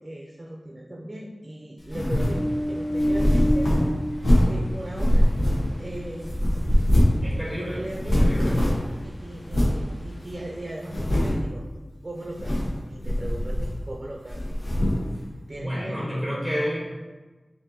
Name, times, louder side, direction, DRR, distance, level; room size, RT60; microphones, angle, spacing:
voice 1, 0.0-3.8 4.1-5.3 5.8-6.4 7.6-8.5 9.0-11.6 12.0-14.5 15.5-16.1, right 1 dB, 40° right, -2 dB, 0.5 m, -38 dB
sound 1, 1.9-2.4 3.0-4.6 5.0-5.9 6.2-7.3 7.5-7.6 7.9-8.9 9.5-9.8 10.3-10.4 10.8-11.5 12.2-12.8 13.0-13.9 14.3-15.1, equal, 90° left, 0.8 m, -22 dB
Ocean, 2.2-10.7, equal, 50° left, 0.9 m, -33 dB
voice 2, 7.2-7.8 8.2-8.6 15.5-16.9, equal, 10° left, -6 dB, 1.1 m, -30 dB
5.1 x 2.6 x 2.6 m, 1.2 s
wide cardioid pair, 75°, 0 cm